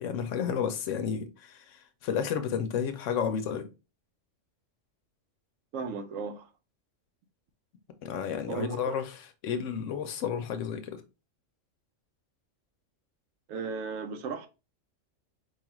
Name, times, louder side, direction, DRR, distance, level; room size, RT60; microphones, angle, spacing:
voice 1, 0.0-3.7 8.0-11.0, left 7 dB, 80° left, 0.9 m, -32 dB
voice 2, 5.7-6.5 8.5-9.0 13.5-14.5, right 5 dB, 85° right, 1.0 m, -35 dB
4.5 x 2.4 x 2.9 m
omnidirectional pair, 1.3 m